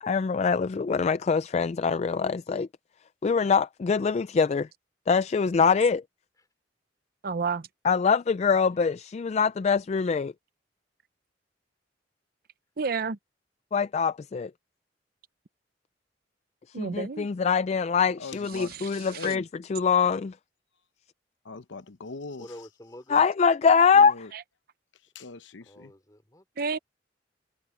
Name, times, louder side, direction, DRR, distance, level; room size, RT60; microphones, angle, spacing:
voice 1, 0.0-2.7 3.2-4.7 5.1-6.0 7.8-10.3 13.7-14.5 16.8-19.4 19.7-20.3 23.1-24.2, left 5 dB, 35° left, 0.3 m, -23 dB
voice 2, 7.2-7.7 12.8-13.2 16.7-17.3 18.7-19.3 26.6-26.8, right 5 dB, 55° right, 0.6 m, -31 dB
voice 3, 18.2-19.4 21.4-22.6 23.9-24.3 25.1-25.9, left 3 dB, 90° left, 0.8 m, -41 dB
voice 4, 22.4-23.2 25.7-26.5, left 1 dB, 20° left, 5.2 m, -46 dB
head